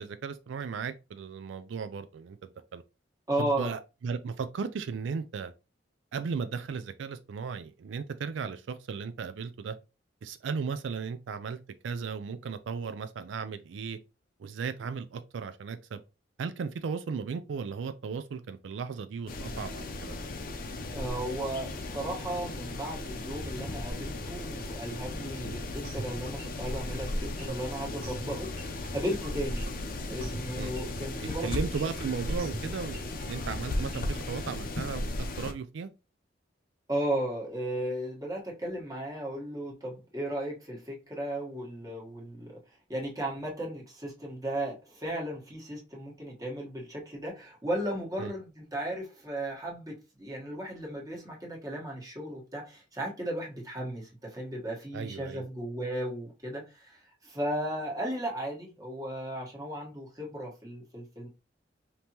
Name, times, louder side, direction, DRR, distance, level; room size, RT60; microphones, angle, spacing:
voice 1, 0.0-2.8 3.4-5.5 6.1-9.8 10.2-11.6 11.8-14.0 14.4-16.0 16.4-20.1 30.6-30.7 31.4-35.9 48.2-48.3 54.9-55.5, right 5 dB, 80° right, 0.4 m, -36 dB
voice 2, 3.3-3.7 20.9-29.7 30.1-31.6 36.9-42.6 42.9-61.3, right 1 dB, 20° right, 1.3 m, -35 dB
sound 1, 19.3-35.5, left 2 dB, 50° left, 0.6 m, -36 dB
sound 2, 25.8-34.5, right 2 dB, 50° right, 1.0 m, -44 dB
5.2 x 2.9 x 2.9 m
head